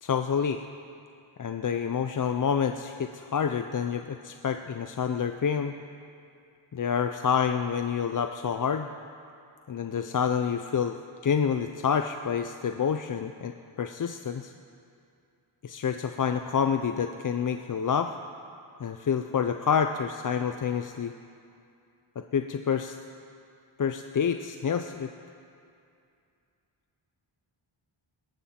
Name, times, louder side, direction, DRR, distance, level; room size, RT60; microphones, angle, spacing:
voice 1, 0.0-0.6 1.4-5.7 6.7-8.9 9.7-11.0 11.2-14.5 15.6-18.2 18.8-21.1 22.2-23.0 23.8-25.1, left 7 dB, 40° left, 7 dB, 0.5 m, -28 dB
18.0 x 13.0 x 4.3 m, 2.5 s
wide cardioid pair, 95°, 50 cm